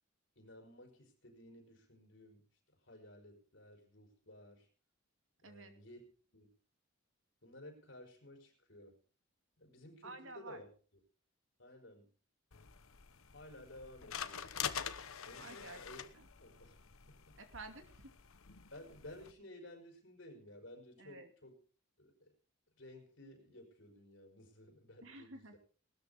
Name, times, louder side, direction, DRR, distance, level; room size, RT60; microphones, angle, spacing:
voice 1, 0.3-2.5 2.8-4.7 5.4-6.1 6.3-6.5 7.4-9.0 9.6-10.7 11.6-12.1 13.3-14.5 15.2-16.0 16.4-16.8 17.1-17.4 18.7-21.6 22.0-22.3 22.8-25.6, left 1 dB, 60° left, 4 dB, 5.0 m, -55 dB
voice 2, 10.0-10.6 15.3-15.8 16.1-16.3 17.4-18.1 21.0-21.3 25.0-25.6, right 3 dB, 70° right, 6 dB, 2.6 m, -51 dB
sound 1, 12.5-19.3, left 8 dB, 90° left, 1.1 m, -46 dB
19.0 x 13.0 x 3.6 m, 0.39 s
head